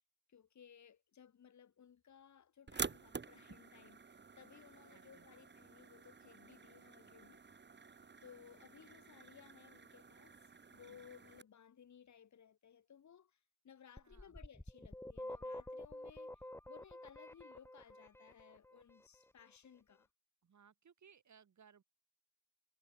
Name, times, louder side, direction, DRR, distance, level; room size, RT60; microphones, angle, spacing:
voice 1, 0.3-7.4 8.2-10.4 10.7-20.1, left 8 dB, 60° left, 2.0 m, -61 dB
sound 1, 2.7-11.4, right 5 dB, 35° right, 1.8 m, -49 dB
voice 2, 4.9-5.3 14.0-14.4 20.4-21.8, right 7 dB, 60° right, 8.0 m, -65 dB
sound 2, 14.0-18.8, left 1 dB, 5° left, 1.8 m, -48 dB
cardioid pair, 85°, 32 cm